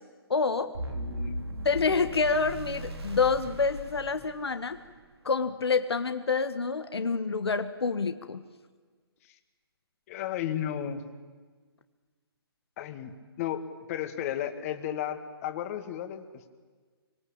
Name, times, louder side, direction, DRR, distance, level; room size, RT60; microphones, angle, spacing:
voice 1, 0.3-0.7 1.6-4.8 5.2-8.4, left 4 dB, 80° left, 9 dB, 1.5 m, -27 dB
sound 1, 0.7-4.9, right 1 dB, 75° right, 4.1 m, -37 dB
voice 2, 0.9-1.4 10.1-11.0 12.8-13.1 13.4-13.6 13.9-16.5, left 10 dB, 35° left, 8 dB, 2.2 m, -34 dB
24.5 x 23.5 x 8.9 m, 1.5 s
figure-of-eight pair, 140°, 13 cm